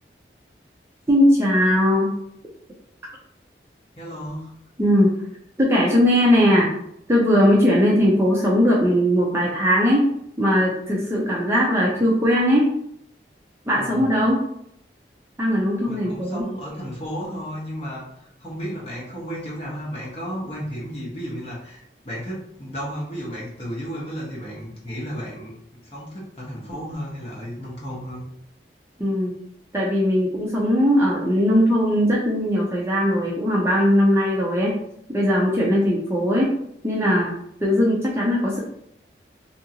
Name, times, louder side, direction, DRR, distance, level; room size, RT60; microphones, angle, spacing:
voice 1, 1.1-2.1 4.8-5.1 5.6-6.7 7.1-10.1 10.4-12.7 13.7-14.5 15.4-16.4 29.0-29.3 29.7-34.8 35.1-36.6 36.8-37.3 37.6-38.6, equal, 15° right, -4 dB, 0.5 m, -19 dB
voice 2, 4.0-4.5 13.7-14.2 15.9-18.0 18.4-25.6 25.8-28.2, equal, 35° left, -6 dB, 0.9 m, -33 dB
2.7 x 2.5 x 2.8 m, 0.72 s
head